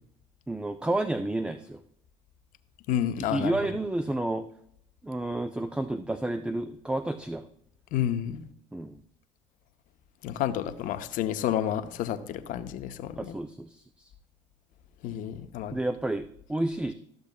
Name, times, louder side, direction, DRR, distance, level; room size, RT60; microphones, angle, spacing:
voice 1, 0.5-1.8 3.2-4.5 5.0-7.5 8.7-9.0 13.2-14.1 15.7-16.9, right 1 dB, 5° right, 10 dB, 0.4 m, -30 dB
voice 2, 2.9-3.6 7.9-8.4 10.2-13.4 15.0-15.8, left 10 dB, 60° left, 10 dB, 0.7 m, -30 dB
13.5 x 6.9 x 2.2 m, 0.71 s
hypercardioid pair, 60°, 16 cm